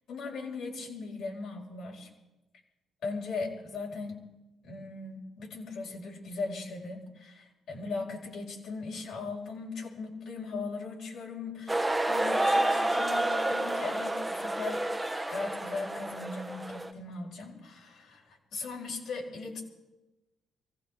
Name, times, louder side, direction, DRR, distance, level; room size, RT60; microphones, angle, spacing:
voice 1, 0.1-2.1 3.0-4.2 4.6-19.6, left 4 dB, 75° left, -2 dB, 4.9 m, -39 dB
sound 1, 11.7-16.9, right 1 dB, 10° right, 1.2 m, -29 dB
24.0 x 17.0 x 3.5 m, 1.0 s
cardioid pair, 90°, 0 cm